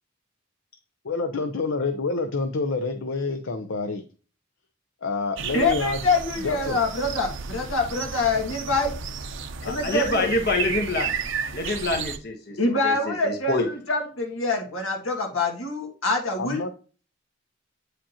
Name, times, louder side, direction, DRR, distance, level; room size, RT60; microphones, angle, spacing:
voice 1, 1.0-4.0 5.0-6.0 6.4-6.8 16.4-16.7, left 3 dB, 70° left, 7 dB, 0.7 m, -27 dB
sound 1, 5.4-12.2, right 6 dB, 65° right, 0.6 m, -33 dB
voice 2, 5.5-8.9 9.6-10.3 12.6-16.6, left 3 dB, 85° left, 2 dB, 1.9 m, -25 dB
voice 3, 9.6-11.1 11.5-13.7, left 2 dB, 55° left, 4 dB, 1.1 m, -26 dB
8.7 x 5.0 x 2.9 m, 0.38 s
head